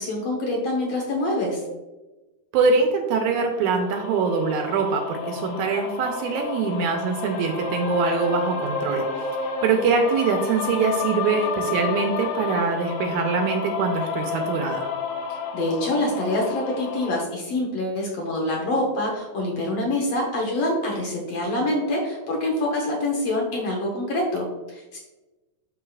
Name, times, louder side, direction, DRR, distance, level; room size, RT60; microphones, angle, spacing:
voice 1, 0.0-1.6 15.5-25.0, left 1 dB, 60° left, -1 dB, 1.8 m, -25 dB
voice 2, 2.5-14.9, right 4 dB, 75° right, 3 dB, 1.9 m, -23 dB
sound 1, 3.7-17.2, left 5 dB, 85° left, 2.4 m, -31 dB
11.0 x 4.7 x 2.4 m, 1.1 s
omnidirectional pair, 3.8 m